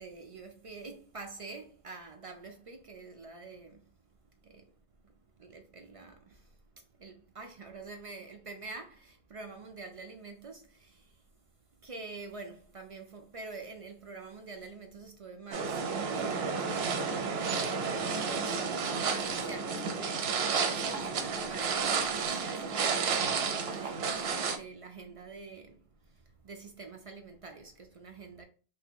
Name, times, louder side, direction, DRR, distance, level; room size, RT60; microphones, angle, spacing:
voice 1, 0.0-3.9 4.3-4.7 5.0-28.4, right 4 dB, 55° right, 0.4 m, -47 dB
sound 1, 15.5-24.6, right 5 dB, 75° right, 0.8 m, -31 dB
2.9 x 2.6 x 3.5 m
omnidirectional pair, 1.0 m